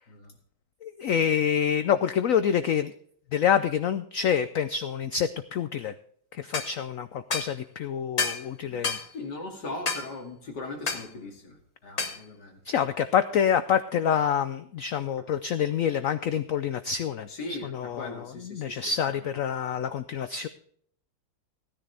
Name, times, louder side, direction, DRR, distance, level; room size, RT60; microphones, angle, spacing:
voice 1, 0.8-2.9 3.3-5.9 6.3-9.0 12.6-20.5, left 8 dB, 90° left, 12 dB, 0.7 m, -27 dB
sound 1, 6.5-6.7 7.3-7.5 8.2-8.4 8.8-9.1 9.9-10.1 10.9-11.1 12.0-12.2, left 4 dB, 30° left, 0.8 m, -29 dB
voice 2, 8.6-12.6 17.3-17.7 18.0-19.2, left 2 dB, 60° left, 1 dB, 3.0 m, -40 dB
16.0 x 10.0 x 3.4 m, 0.64 s
omnidirectional pair, 2.0 m